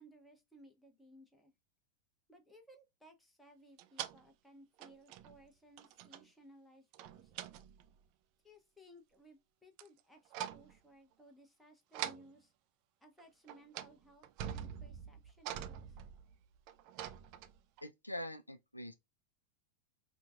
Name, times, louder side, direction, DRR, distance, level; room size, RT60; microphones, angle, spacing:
voice 1, 0.0-1.5 2.3-7.3 8.4-12.5 13.0-15.9, equal, 5° left, 0.9 m, -61 dB
sound 1, 3.8-4.2 4.8-5.5 5.8-6.2 6.9-7.9 9.8-10.0 10.3-10.7 11.9-12.3 13.2-13.3 13.5-13.9 14.2-17.8, right 10 dB, 45° right, 0.3 m, -45 dB
voice 2, 17.8-18.9, left 1 dB, 85° left, 0.4 m, -44 dB
4.4 x 2.2 x 2.4 m
figure-of-eight pair, 90°, 0 cm